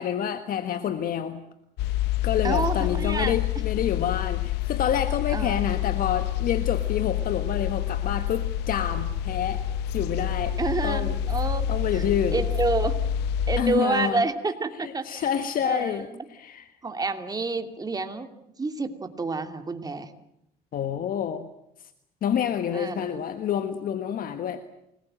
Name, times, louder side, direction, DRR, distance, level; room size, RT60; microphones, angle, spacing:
voice 1, 0.0-1.4 2.2-9.6 9.9-10.6 10.8-11.2 11.7-12.4 13.6-14.2 14.8-16.7 20.7-21.5 22.2-24.6, left 9 dB, 55° left, 10 dB, 1.5 m, -28 dB
sound 1, 1.8-13.6, left 11 dB, 90° left, 1.0 m, -27 dB
voice 2, 2.4-3.4 5.3-5.7 10.6-12.0 12.3-13.0 13.5-15.2 15.6-16.2 16.8-18.3 18.6-20.1 22.7-23.2, right 3 dB, 20° right, 7 dB, 2.8 m, -29 dB
29.0 x 20.5 x 7.7 m, 0.81 s
cardioid pair, 110°, 17 cm